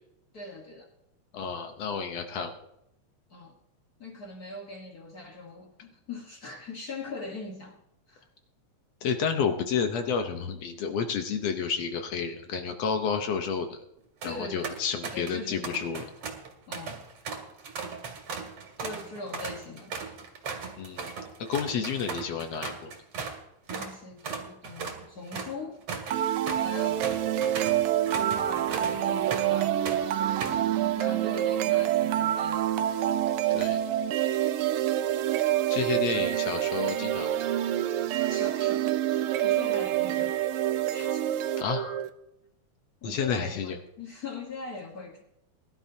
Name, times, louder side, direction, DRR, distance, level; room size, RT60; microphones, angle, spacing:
voice 1, 0.3-0.9 3.3-3.5 4.0-7.8 8.1-8.3 11.6-11.7 14.2-14.8 15.1-15.7 16.7-17.0 18.8-20.2 23.7-25.8 26.6-27.1 28.3-29.9 30.8-33.0 38.3-40.3 40.9-41.2 43.0-45.2, left 3 dB, 50° left, 1.1 m, -41 dB
voice 2, 1.3-2.5 9.0-13.8 14.2-16.1 20.8-21.1 21.4-22.9 30.4-30.7 33.5-33.8 35.7-37.5 41.6-42.0 43.0-43.8, left 6 dB, 70° left, 1.9 m, -30 dB
sound 1, 14.0-14.3 14.6-15.4 15.6-23.4 23.7-23.9 24.2-29.6 29.9-30.7, right 5 dB, 60° right, 2.9 m, -37 dB
sound 2, 26.1-42.1, right 12 dB, 85° right, 1.2 m, -27 dB
21.5 x 12.0 x 2.8 m
omnidirectional pair, 3.3 m